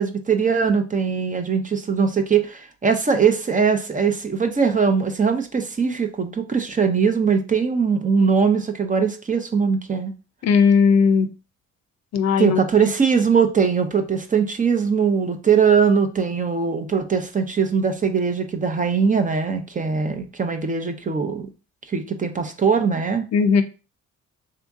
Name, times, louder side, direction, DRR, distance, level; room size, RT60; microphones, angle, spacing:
voice 1, 0.0-10.1 12.4-21.5 21.9-23.3, right 6 dB, 25° right, 6 dB, 0.6 m, -21 dB
voice 2, 10.4-11.3 12.1-12.9 23.3-23.6, left 6 dB, 60° left, 9 dB, 0.6 m, -17 dB
3.6 x 2.8 x 3.5 m, 0.32 s
cardioid pair, 90°, 30 cm